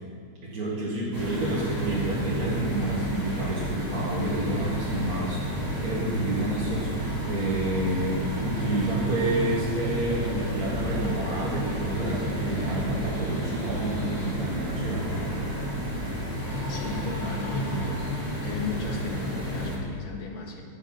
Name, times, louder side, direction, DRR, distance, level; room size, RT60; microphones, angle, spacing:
voice 1, 0.4-15.1, right 1 dB, 50° right, -7 dB, 2.3 m, -29 dB
sound 1, 1.1-19.8, equal, 10° right, 2.6 m, -31 dB
sound 2, 9.7-15.7, right 6 dB, 65° right, 0.7 m, -41 dB
voice 2, 16.7-18.1 18.4-20.6, left 3 dB, 75° left, 1 dB, 2.3 m, -35 dB
15.5 x 8.0 x 5.7 m, 2.2 s
omnidirectional pair, 2.2 m